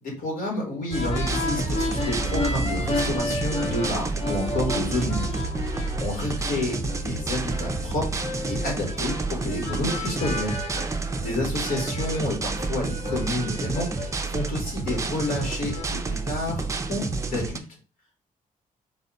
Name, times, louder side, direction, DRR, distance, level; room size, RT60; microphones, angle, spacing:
voice 1, 0.0-5.4 6.0-10.6 11.2-17.6, left 1 dB, 80° left, 0 dB, 1.6 m, -30 dB
sound 1, 0.9-16.0, left 1 dB, 45° left, 0.7 m, -32 dB
sound 2, 0.9-17.6, right 3 dB, 20° right, 0.4 m, -30 dB
4.0 x 2.3 x 4.0 m, 0.34 s
wide cardioid pair, 160°, 14 cm